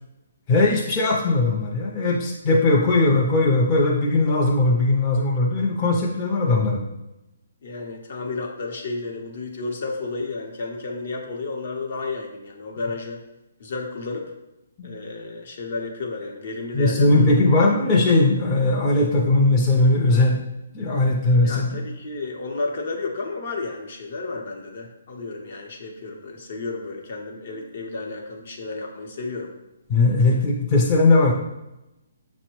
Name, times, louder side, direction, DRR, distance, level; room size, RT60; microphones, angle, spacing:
voice 1, 0.5-6.8 14.8-14.9 16.7-20.4 20.7-21.8 29.9-31.3, left 2 dB, 25° left, -3 dB, 0.5 m, -19 dB
voice 2, 7.6-13.2 13.6-14.3 14.8-17.4 21.4-29.5 30.3-30.5, left 3 dB, 60° left, 1 dB, 0.7 m, -32 dB
6.2 x 2.1 x 3.0 m, 0.91 s
hypercardioid pair, 155°, 0 cm